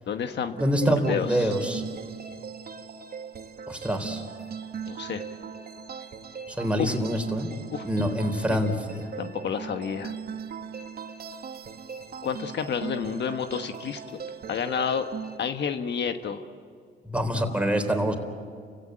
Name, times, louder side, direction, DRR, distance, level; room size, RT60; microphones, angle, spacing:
voice 1, 0.1-0.6 0.9-1.5 4.9-5.2 6.8-6.9 7.7-7.8 8.5-8.6 9.2-10.1 12.2-14.0 14.5-15.1 15.4-16.4, left 7 dB, 60° left, 7 dB, 1.3 m, -30 dB
voice 2, 0.6-1.8 3.7-4.2 6.5-7.5 7.8-9.1 17.0-18.2, equal, 5° right, 4 dB, 3.8 m, -26 dB
sound 1, 0.6-15.4, right 6 dB, 50° right, 1.6 m, -39 dB
30.0 x 16.5 x 9.2 m, 2.1 s
cardioid pair, 90°, 20 cm